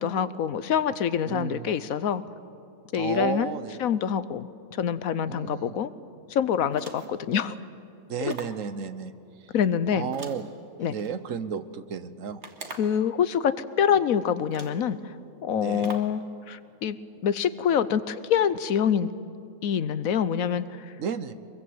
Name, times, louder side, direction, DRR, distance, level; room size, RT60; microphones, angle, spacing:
voice 1, 0.0-2.2 2.9-3.5 3.8-5.9 6.3-7.6 8.2-8.3 9.5-10.1 10.8-11.0 12.8-15.0 15.4-16.2 16.5-17.0 17.2-19.1 19.6-20.9, left 8 dB, 75° left, 14 dB, 1.2 m, -25 dB
voice 2, 1.3-1.7 2.9-3.8 5.3-5.8 8.1-9.1 9.9-10.5 10.9-12.4 15.5-15.9 21.0-21.3, right 7 dB, 65° right, 12 dB, 1.2 m, -33 dB
sound 1, 6.7-7.3 8.3-8.7 10.1-11.1 12.4-13.1 13.9-14.0 14.5-14.9 15.8-16.2, right 3 dB, 50° right, 1.9 m, -43 dB
24.0 x 22.5 x 7.9 m, 2.7 s
omnidirectional pair, 1.5 m